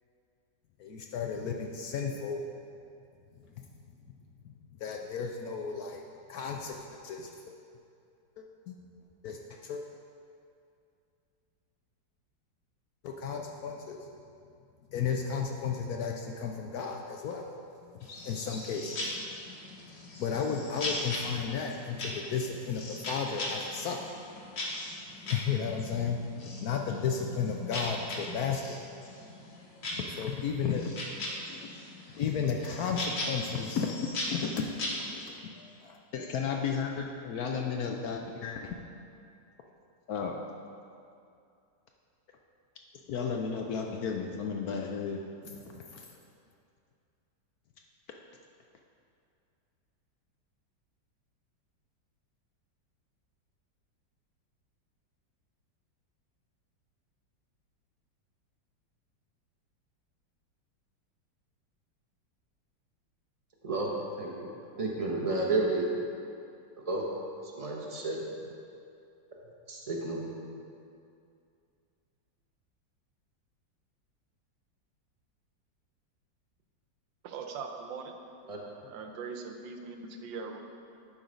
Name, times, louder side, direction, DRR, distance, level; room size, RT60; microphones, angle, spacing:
voice 1, 0.8-2.4 3.6-3.7 4.8-6.0 6.3-7.3 8.4-8.8 9.2-9.8 13.0-14.0 14.9-17.5 17.8-19.1 20.2-24.0 25.3-28.8 29.8-30.9 31.5-31.6 32.1-33.9 34.2-38.8 40.1-40.4 43.1-46.2, left 6 dB, 70° left, 2 dB, 0.9 m, -34 dB
sound 1, 18.0-35.2, left 1 dB, 90° left, 2.0 m, -39 dB
voice 2, 64.2-64.5 64.8-66.0 66.8-67.0 67.5-68.2 69.3-69.4 69.7-70.2 78.5-78.6, right 2 dB, 30° right, -2 dB, 0.6 m, -31 dB
voice 3, 77.2-78.1 78.8-80.6, right 5 dB, 90° right, 4 dB, 1.4 m, -40 dB
11.5 x 3.9 x 5.0 m, 2.5 s
omnidirectional pair, 2.0 m